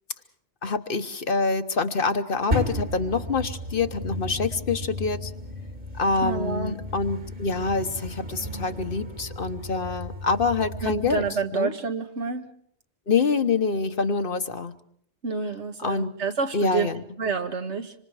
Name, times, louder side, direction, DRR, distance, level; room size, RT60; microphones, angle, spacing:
voice 1, 0.6-5.3 5.9-11.2 11.5-11.7 13.1-14.7 15.8-16.1 16.5-17.0, left 4 dB, 50° left, 9 dB, 1.2 m, -26 dB
sound 1, 2.5-11.3, equal, 50° right, 2.8 m, -34 dB
voice 2, 6.2-6.8 10.8-12.5 15.2-16.9 17.2-17.9, right 4 dB, 75° right, 6 dB, 1.9 m, -28 dB
26.0 x 25.5 x 4.9 m, 0.62 s
omnidirectional pair, 1.2 m